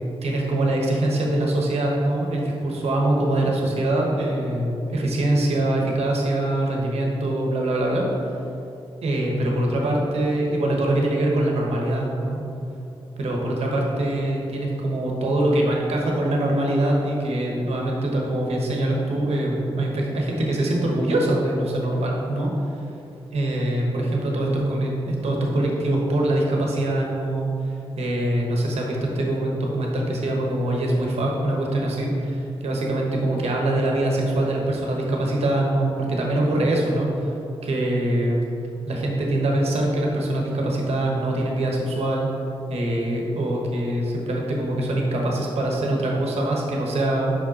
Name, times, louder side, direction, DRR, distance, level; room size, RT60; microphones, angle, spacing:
voice 1, 0.2-8.3 9.0-12.4 13.2-22.5 23.3-37.3 37.6-38.4 38.9-42.3 42.7-47.3, right 1 dB, 90° right, -1 dB, 1.1 m, -23 dB
5.6 x 5.2 x 4.2 m, 2.8 s
wide cardioid pair, 155°, 10 cm